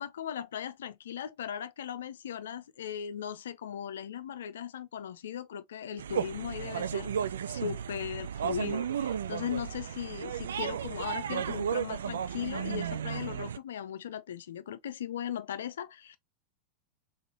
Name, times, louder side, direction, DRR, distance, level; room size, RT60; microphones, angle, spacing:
voice 1, 0.0-7.2 7.5-16.2, left 9 dB, 60° left, 0.5 m, -38 dB
sound 1, 6.0-13.6, right 8 dB, 65° right, 0.4 m, -34 dB
3.8 x 3.8 x 3.1 m
figure-of-eight pair, 90°, 0 cm